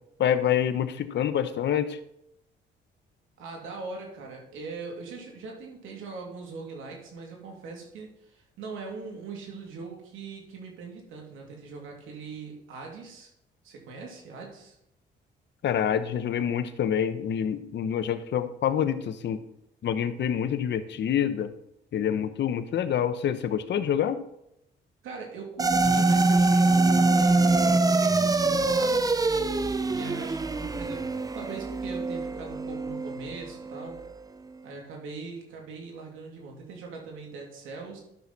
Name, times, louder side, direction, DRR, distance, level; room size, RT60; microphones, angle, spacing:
voice 1, 0.2-2.0 15.6-19.4 19.8-21.5 21.9-24.2, left 9 dB, 60° left, 11 dB, 0.9 m, -27 dB
voice 2, 3.4-13.3 13.6-14.8 25.0-29.0 29.9-34.0 34.6-38.0, right 4 dB, 90° right, 0 dB, 2.7 m, -41 dB
sound 1, 25.6-34.1, right 3 dB, 20° right, 0.6 m, -24 dB
12.0 x 6.1 x 4.1 m, 0.78 s
cardioid pair, 90°, 20 cm